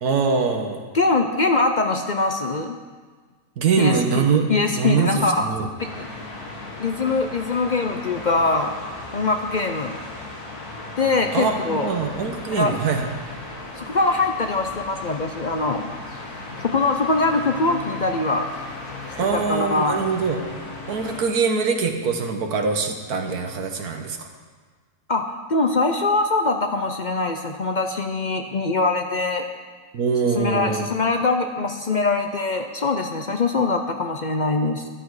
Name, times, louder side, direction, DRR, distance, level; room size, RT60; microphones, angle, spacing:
voice 1, 0.0-0.8 3.6-5.7 11.3-13.1 19.2-20.4 20.9-24.3 29.9-30.9, right 5 dB, 75° right, 4 dB, 1.7 m, -23 dB
voice 2, 0.9-2.8 3.8-4.2 4.5-5.5 5.8-6.1 6.8-8.8 9.1-10.0 11.0-11.9 12.5-12.7 13.8-15.9 16.6-18.5 19.2-20.0 25.1-29.4 30.2-34.9, left 3 dB, 55° left, 5 dB, 0.5 m, -23 dB
sound 1, 5.8-21.2, left 2 dB, 75° left, 2.2 m, -37 dB
13.5 x 10.5 x 4.8 m, 1.5 s
omnidirectional pair, 1.7 m